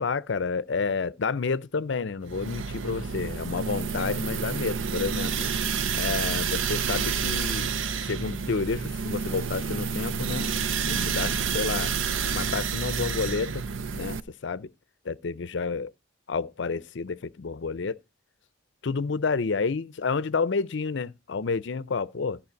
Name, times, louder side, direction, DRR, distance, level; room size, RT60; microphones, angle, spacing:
voice 1, 0.0-5.5 5.9-7.8 8.1-10.5 10.8-11.9 12.2-13.6 13.9-14.7 15.0-15.9 16.3-18.0 18.8-22.4, left 4 dB, 60° left, 0.5 m, -30 dB
sound 1, 2.3-14.2, right 6 dB, 70° right, 0.6 m, -29 dB
13.5 x 5.0 x 5.1 m
head